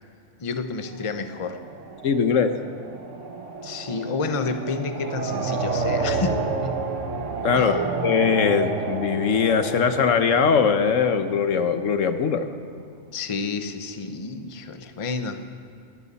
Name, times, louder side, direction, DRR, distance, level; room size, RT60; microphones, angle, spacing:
voice 1, 0.4-1.6 3.6-6.7 7.5-7.8 13.1-15.6, left 4 dB, 30° left, 8 dB, 0.8 m, -30 dB
sound 1, 0.9-11.7, right 4 dB, 75° right, 1.4 m, -30 dB
voice 2, 2.0-2.5 7.4-12.5, left 6 dB, 85° left, 9 dB, 1.3 m, -21 dB
21.0 x 16.0 x 4.1 m, 2.3 s
omnidirectional pair, 1.3 m